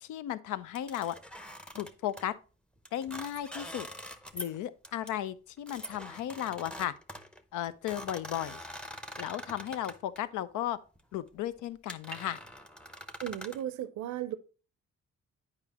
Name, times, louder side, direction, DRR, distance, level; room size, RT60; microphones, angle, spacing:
voice 1, 0.0-1.2 1.7-2.3 2.9-3.9 4.3-6.9 7.5-8.6 9.2-10.8 11.1-12.4, left 12 dB, 85° left, 0.6 m, -35 dB
sound 1, 0.8-2.3 2.9-4.6 4.8-5.1 5.7-10.2 11.0-11.2 11.6-11.7 11.9-13.6, equal, 5° left, 0.6 m, -44 dB
voice 2, 13.2-14.4, right 12 dB, 70° right, 0.6 m, -35 dB
9.0 x 4.9 x 2.8 m
cardioid pair, 90°, 30 cm